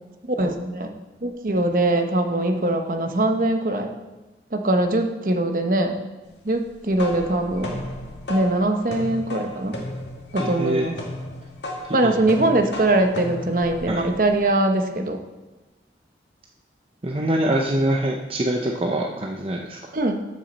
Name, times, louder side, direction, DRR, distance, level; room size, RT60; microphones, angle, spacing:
voice 1, 0.3-0.9 1.2-3.9 4.5-6.0 6.4-7.8 8.3-9.8 10.3-11.0 11.9-15.2 19.9-20.3, right 1 dB, 50° right, 5 dB, 1.0 m, -22 dB
sound 1, 6.7-14.4, left 1 dB, 85° left, 1.8 m, -35 dB
voice 2, 10.4-10.9 12.0-12.1 13.9-14.0 17.0-19.8, right 1 dB, 35° right, 1 dB, 0.6 m, -24 dB
13.5 x 6.3 x 4.1 m, 1.1 s
head